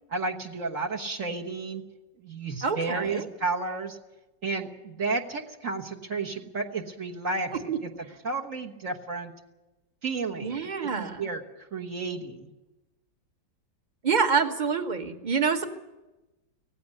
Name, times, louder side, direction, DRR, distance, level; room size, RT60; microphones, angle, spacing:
voice 1, 0.1-1.8 2.2-4.0 4.4-7.5 7.8-7.9 8.2-9.3 10.0-12.5, right 3 dB, 45° right, -1 dB, 1.6 m, -32 dB
voice 2, 2.6-3.3 7.7-7.8 10.4-11.3 14.0-15.6, right 5 dB, 30° right, 7 dB, 1.2 m, -26 dB
18.0 x 15.5 x 9.7 m, 1.0 s
omnidirectional pair, 2.0 m